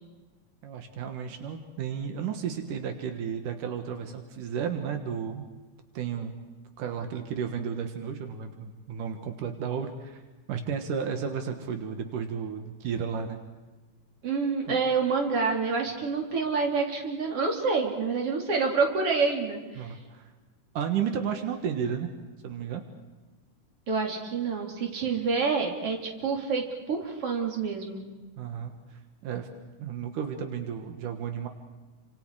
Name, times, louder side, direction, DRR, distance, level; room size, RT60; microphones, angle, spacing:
voice 1, 0.6-5.5 5.9-6.3 6.8-10.2 10.5-13.4 14.7-14.8 19.8-20.2 20.7-22.1 22.4-22.8 28.4-29.5 29.8-31.5, right 7 dB, 85° right, 6 dB, 3.1 m, -33 dB
voice 2, 14.2-19.9 23.9-28.0, right 4 dB, 45° right, 1 dB, 4.1 m, -27 dB
29.5 x 26.5 x 4.9 m, 1.3 s
omnidirectional pair, 3.6 m